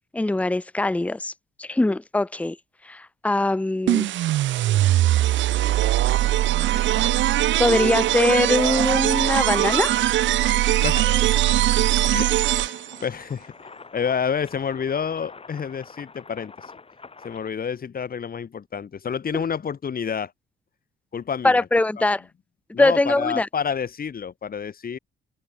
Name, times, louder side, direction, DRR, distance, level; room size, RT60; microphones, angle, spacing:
voice 1, 0.1-1.3 1.6-2.6 2.8-4.1 7.6-9.9 19.3-19.4 21.4-22.2 22.8-23.5, left 2 dB, 5° left, 0.8 m, -22 dB
sound 1, 3.9-13.0, right 14 dB, 70° right, 0.7 m, -21 dB
sound 2, 6.0-17.5, left 4 dB, 30° left, 5.6 m, -46 dB
voice 2, 10.8-11.4 12.0-13.5 13.9-16.5 17.2-20.3 21.1-21.6 22.7-25.0, left 7 dB, 45° left, 5.9 m, -29 dB
open air
cardioid pair, 90°, 20 cm